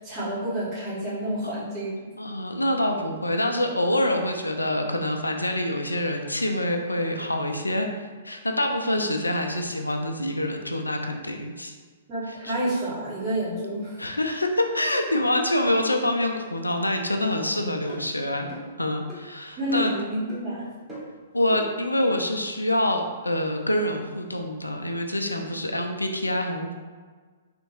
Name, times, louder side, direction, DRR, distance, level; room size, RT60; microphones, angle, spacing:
voice 1, 0.0-2.0 12.1-14.0 19.6-20.7, right 1 dB, 30° right, -8 dB, 1.4 m, -29 dB
voice 2, 2.2-11.7 12.3-12.5 14.0-18.5 18.8-19.9 21.3-26.8, left 1 dB, 85° left, 4 dB, 0.4 m, -26 dB
sound 1, 17.3-17.4 17.9-18.0 18.5-18.7 19.1-19.2 19.7-20.0 20.3-20.4 20.9-21.1 21.5-21.6, equal, 5° right, 1.5 m, -39 dB
3.4 x 2.8 x 3.0 m, 1.5 s
figure-of-eight pair, 115°, 0 cm